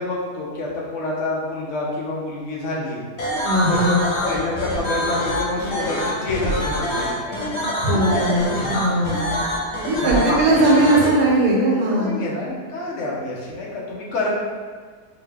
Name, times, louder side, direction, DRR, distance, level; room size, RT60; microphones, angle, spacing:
voice 1, 0.0-3.0 3.7-7.6 7.9-8.4 9.9-10.9 12.0-14.3, left 2 dB, 60° left, -4 dB, 0.9 m, -28 dB
sound 1, 3.2-11.1, equal, 80° left, 1.5 m, -25 dB
voice 2, 3.4-4.0 7.8-9.2 9.8-12.2, right 1 dB, 85° right, -4 dB, 1.2 m, -19 dB
3.8 x 2.6 x 3.4 m, 1.5 s
omnidirectional pair, 1.7 m